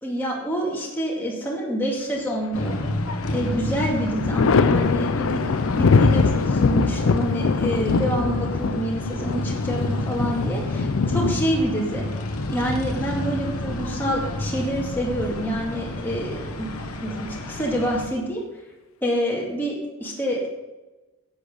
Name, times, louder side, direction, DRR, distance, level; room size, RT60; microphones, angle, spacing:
voice 1, 0.0-2.7 3.3-5.4 5.7-12.1 12.5-16.7 17.0-18.4 19.0-20.5, equal, 10° left, -3 dB, 2.2 m, -27 dB
sound 1, 2.5-18.1, left 1 dB, 85° left, 1.1 m, -30 dB
Thunder, 2.6-3.3 3.7-13.3 14.8-15.6, left 4 dB, 70° left, 0.4 m, -23 dB
10.0 x 8.2 x 5.1 m, 1.1 s
head